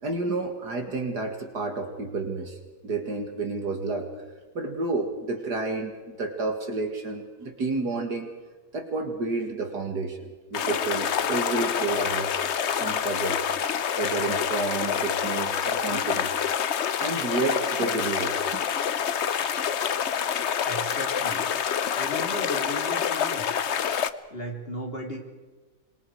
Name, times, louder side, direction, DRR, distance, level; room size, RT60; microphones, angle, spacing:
voice 1, 0.0-2.6 2.8-4.1 4.5-8.3 8.7-12.3 12.7-13.4 14.0-16.3 17.0-18.4, right 3 dB, 55° right, 5 dB, 2.5 m, -30 dB
sound 1, 10.5-24.1, left 8 dB, 65° left, 0.7 m, -27 dB
voice 2, 20.6-21.5 21.9-23.5 24.3-25.2, equal, 25° left, 2 dB, 3.3 m, -35 dB
26.5 x 22.5 x 4.8 m, 1.3 s
omnidirectional pair, 2.2 m